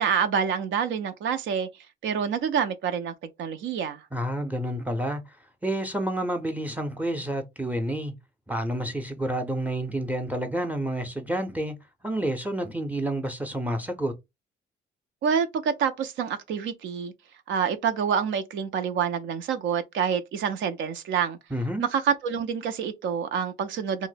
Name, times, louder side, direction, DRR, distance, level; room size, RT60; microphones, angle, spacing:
voice 1, 0.0-1.7 2.0-4.1 15.2-17.1 17.5-21.4 21.8-24.1, right 7 dB, 75° right, 0.4 m, -27 dB
voice 2, 4.1-5.2 5.6-8.1 8.5-11.8 12.0-14.1 21.5-21.8, right 1 dB, 10° right, 0.5 m, -29 dB
2.5 x 2.0 x 3.8 m
cardioid pair, 90°, 20 cm